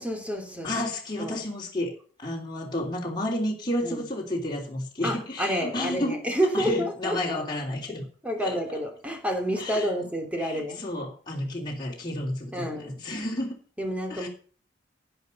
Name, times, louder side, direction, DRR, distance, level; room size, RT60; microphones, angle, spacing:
voice 1, 0.0-0.7 1.2-1.4 3.8-4.0 5.0-7.4 8.2-10.8 12.5-13.0 13.8-14.3, equal, 5° right, 3.0 m, -29 dB
voice 2, 0.6-1.9 2.2-6.2 6.5-8.1 8.4-8.6 9.6-9.9 10.4-13.6 14.1-14.3, left 1 dB, 25° left, 3.2 m, -31 dB
11.0 x 10.0 x 5.4 m
head